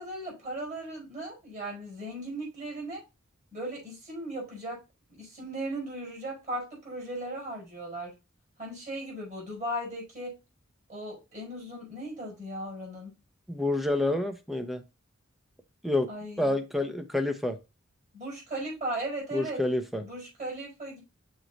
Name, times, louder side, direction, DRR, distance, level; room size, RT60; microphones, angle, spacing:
voice 1, 0.0-3.0 3.5-4.8 5.1-8.2 8.6-10.3 10.9-13.1 16.1-16.6 18.1-19.6 20.0-21.0, right 1 dB, 35° right, 4.7 m, -37 dB
voice 2, 13.5-14.8 15.8-16.1 16.4-17.6 19.3-20.0, left 2 dB, ahead, 0.7 m, -28 dB
6.5 x 4.6 x 4.0 m
head